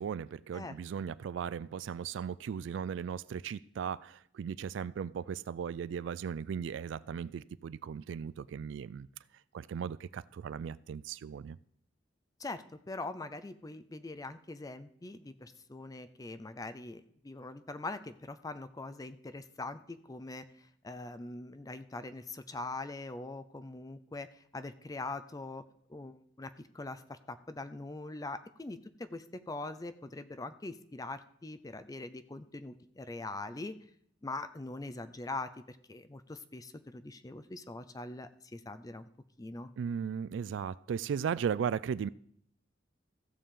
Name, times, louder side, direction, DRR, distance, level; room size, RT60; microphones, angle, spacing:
voice 1, 0.0-9.1 9.5-11.6 39.8-42.1, right 7 dB, 75° right, 0.3 m, -37 dB
voice 2, 12.4-25.6 25.9-33.8 34.2-39.1 39.4-39.7, left 2 dB, 20° left, 0.5 m, -42 dB
15.5 x 6.8 x 3.7 m
head